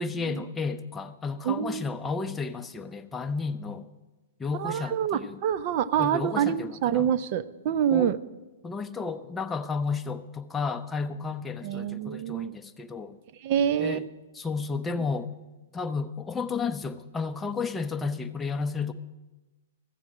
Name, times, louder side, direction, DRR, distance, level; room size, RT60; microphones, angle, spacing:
voice 1, 0.0-3.9 4.4-5.4 6.0-7.1 7.9-8.1 8.6-13.2 13.8-14.1 14.3-15.3 15.7-18.9, left 4 dB, 10° left, 7 dB, 0.7 m, -32 dB
voice 2, 1.4-1.8 4.6-8.2 11.6-12.6 13.4-14.1, right 9 dB, 45° right, 13 dB, 0.6 m, -26 dB
14.5 x 7.6 x 7.4 m, 1.1 s
hypercardioid pair, 140°, 0 cm